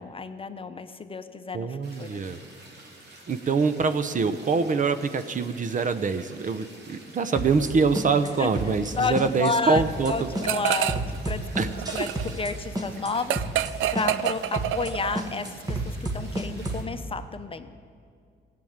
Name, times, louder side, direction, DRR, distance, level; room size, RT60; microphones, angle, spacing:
voice 1, 0.0-2.2 8.4-8.5 9.0-11.4 12.0-12.1 12.4-17.7, left 4 dB, 25° left, 9 dB, 0.8 m, -31 dB
voice 2, 1.5-2.4 3.3-10.3 11.6-11.7 12.0-12.1, right 4 dB, 40° right, 12 dB, 0.8 m, -25 dB
sound 1, 1.8-16.8, right 2 dB, 60° right, 3.1 m, -49 dB
sound 2, 7.4-7.7 8.0-8.3 8.6-8.9 9.2-9.5 9.8-10.1 10.4-12.5 12.8-13.1 13.4-13.7 14.0-14.3 14.6-14.9 15.2-16.9, right 2 dB, 20° right, 1.8 m, -30 dB
sound 3, 10.4-11.2 11.5-15.3, right 12 dB, 80° right, 0.5 m, -28 dB
16.0 x 7.8 x 8.8 m, 2.2 s
cardioid pair, 90°, 20 cm